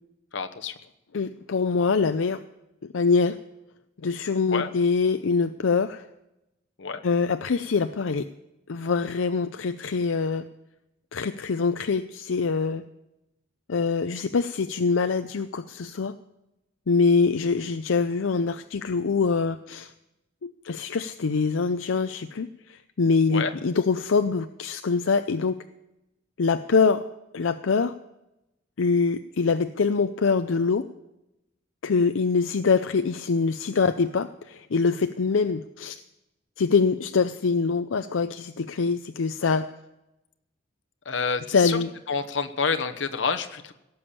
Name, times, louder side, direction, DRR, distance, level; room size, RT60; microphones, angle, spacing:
voice 1, 0.3-0.7 4.5-4.7 6.8-7.0 23.3-23.5 41.0-41.8 42.1-43.7, left 5 dB, 70° left, 7 dB, 1.0 m, -28 dB
voice 2, 1.1-2.4 2.9-3.4 4.0-6.1 7.0-8.3 8.7-10.4 11.1-12.8 13.7-16.1 16.9-19.9 20.4-25.6 26.4-27.0 27.3-27.9 28.8-30.9 31.8-36.0 36.6-39.7 41.5-41.9, left 4 dB, 85° left, 9 dB, 0.5 m, -24 dB
17.5 x 7.1 x 8.6 m, 0.91 s
head